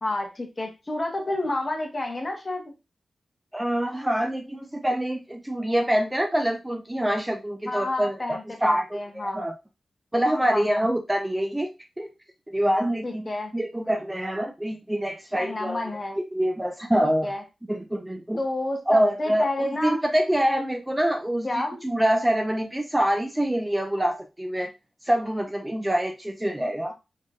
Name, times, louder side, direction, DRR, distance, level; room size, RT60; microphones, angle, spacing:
voice 1, 0.0-2.7 7.7-9.4 10.5-10.8 13.0-13.5 15.3-16.2 17.0-17.4 18.4-20.0 21.4-21.8, left 2 dB, 35° left, 3 dB, 1.2 m, -30 dB
voice 2, 3.5-9.5 10.1-11.7 12.0-12.1 12.5-13.2 13.5-15.8 16.3-17.3 17.7-18.4 18.9-21.5 21.8-24.7 25.0-26.9, right 1 dB, 15° right, 4 dB, 0.5 m, -25 dB
3.7 x 3.6 x 2.4 m, 0.26 s
cardioid pair, 65°, 0 cm